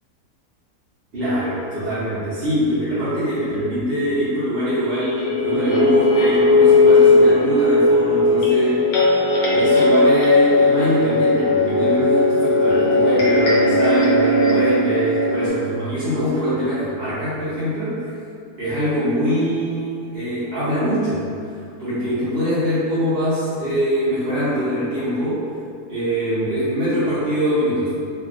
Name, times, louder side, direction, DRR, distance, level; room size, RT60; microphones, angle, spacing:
voice 1, 1.1-8.8 9.5-18.1 18.6-21.3 21.8-25.4 25.9-27.9, equal, 50° right, -14 dB, 0.9 m, -23 dB
sound 1, 5.2-15.5, left 2 dB, 65° left, 1.0 m, -17 dB
3.2 x 2.4 x 2.4 m, 2.4 s
omnidirectional pair, 1.7 m